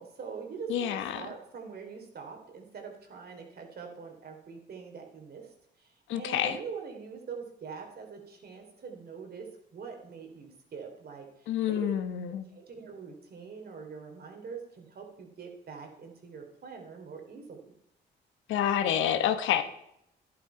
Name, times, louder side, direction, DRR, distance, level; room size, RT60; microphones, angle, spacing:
voice 1, 0.0-11.9 12.5-17.6, right 5 dB, 55° right, 3 dB, 3.1 m, -44 dB
voice 2, 0.7-1.3 6.1-6.6 11.5-12.5 18.5-19.6, left 10 dB, 85° left, 9 dB, 1.1 m, -28 dB
11.5 x 10.5 x 4.5 m, 0.77 s
cardioid pair, 80°, 20 cm